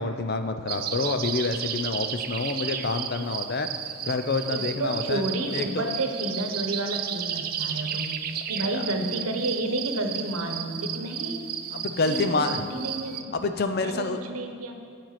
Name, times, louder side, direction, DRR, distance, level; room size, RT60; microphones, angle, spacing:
voice 1, 0.0-3.7 4.0-5.2 5.5-5.9 8.6-8.8 11.7-12.6 13.3-14.2, left 3 dB, 45° left, 8 dB, 0.5 m, -27 dB
sound 1, 0.7-13.2, right 9 dB, 40° right, 0.4 m, -33 dB
voice 2, 4.5-11.4 12.0-13.3 13.8-14.8, right 2 dB, 75° right, 5 dB, 1.0 m, -31 dB
9.0 x 7.5 x 5.8 m, 2.1 s
head